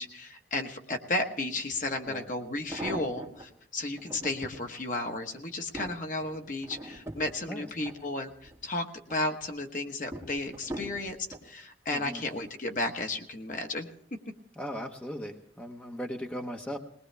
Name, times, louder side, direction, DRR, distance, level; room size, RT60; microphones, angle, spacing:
voice 1, 0.0-11.2 11.4-13.9, left 2 dB, 45° left, 4 dB, 1.3 m, -33 dB
sound 1, 1.7-1.8 2.4-3.5 4.0-4.6 5.2-8.6 9.0-9.5 10.1-11.5 12.2-12.6 12.9-13.0, right 1 dB, 15° right, 2.6 m, -42 dB
voice 2, 11.9-12.2 14.6-16.8, equal, 10° left, 2 dB, 1.1 m, -38 dB
20.5 x 19.5 x 3.4 m, 0.65 s
head